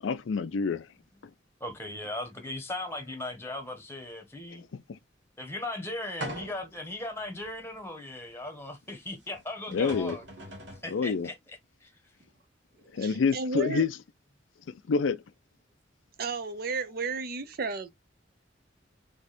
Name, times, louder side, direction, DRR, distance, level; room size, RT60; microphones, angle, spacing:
voice 1, 0.0-0.9 4.7-5.0 9.7-10.2 10.9-11.3 12.9-13.9 14.7-15.2, left 5 dB, 90° left, 0.4 m, -28 dB
voice 2, 1.6-4.6 5.4-10.2 10.8-11.9, left 1 dB, 15° left, 1.1 m, -38 dB
sound 1, 6.2-6.8 7.4-7.5 9.3-9.4 9.7-10.9, right 1 dB, 70° right, 1.9 m, -40 dB
voice 3, 12.9-13.9 16.2-17.9, right 4 dB, 55° right, 0.6 m, -33 dB
3.6 x 3.4 x 4.1 m
head